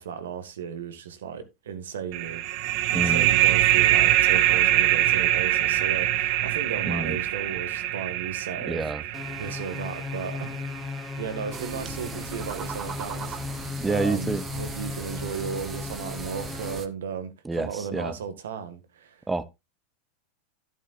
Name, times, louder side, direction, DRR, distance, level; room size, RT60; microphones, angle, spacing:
voice 1, 0.0-8.8 9.4-10.6 11.2-19.2, right 7 dB, 75° right, 1.6 m, -35 dB
sound 1, 2.1-11.4, right 13 dB, 55° right, 0.9 m, -24 dB
voice 2, 2.9-3.3 6.9-7.2 8.7-9.0 13.8-14.4 17.4-18.1 19.3-19.4, right 3 dB, 10° right, 0.8 m, -28 dB
sound 2, 9.1-16.8, left 5 dB, 20° left, 1.1 m, -36 dB
sound 3, 11.5-16.9, right 7 dB, 30° right, 1.2 m, -38 dB
11.0 x 10.0 x 2.4 m
hypercardioid pair, 95°, 0 cm